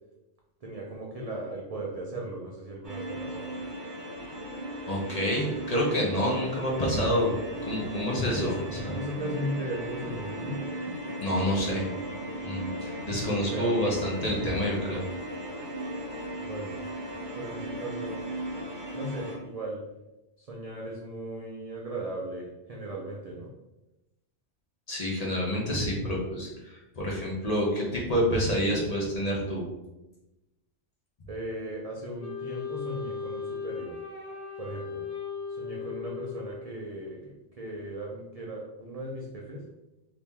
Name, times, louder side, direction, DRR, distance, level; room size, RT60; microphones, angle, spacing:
voice 1, 0.6-3.5 8.2-10.6 13.4-13.7 16.4-16.8 17.4-18.2 18.9-19.8 20.4-23.5 31.3-34.0 34.6-35.0 35.5-39.6, right 1 dB, 55° right, -2 dB, 0.4 m, -37 dB
sound 1, 2.8-19.4, right 1 dB, 25° right, 0.9 m, -37 dB
voice 2, 4.9-7.3 7.6-8.9 11.2-11.9 12.4-15.0 24.9-29.6, equal, 40° left, -3 dB, 0.8 m, -28 dB
sound 2, 8.1-14.9, right 2 dB, 90° right, 0.9 m, -44 dB
Wind instrument woodwind instrument, 32.2-36.8, left 6 dB, 75° left, 1.0 m, -37 dB
2.9 x 2.8 x 3.5 m, 0.98 s
omnidirectional pair, 1.2 m